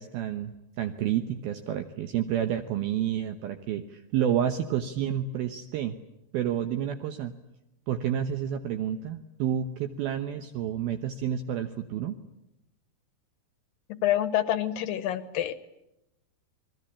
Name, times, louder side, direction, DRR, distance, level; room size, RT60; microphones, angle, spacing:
voice 1, 0.0-6.0 6.3-7.4 7.9-12.2, right 10 dB, 70° right, 7 dB, 2.8 m, -30 dB
voice 2, 13.9-15.7, left 12 dB, 65° left, 14 dB, 2.6 m, -27 dB
29.0 x 21.5 x 8.6 m, 0.89 s
omnidirectional pair, 4.9 m